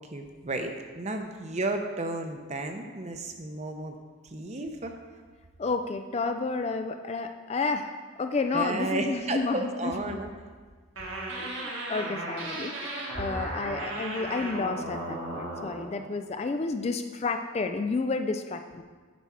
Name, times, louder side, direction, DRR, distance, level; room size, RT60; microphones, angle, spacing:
voice 1, 0.1-3.9 4.3-4.9 8.5-10.3, right 2 dB, 30° right, 5 dB, 0.7 m, -33 dB
voice 2, 5.6-7.9 8.2-10.2 11.4-18.8, left 3 dB, 30° left, 7 dB, 0.3 m, -31 dB
sound 1, 11.0-15.9, right 2 dB, 70° right, 1.7 m, -36 dB
9.2 x 5.6 x 4.7 m, 1.5 s
head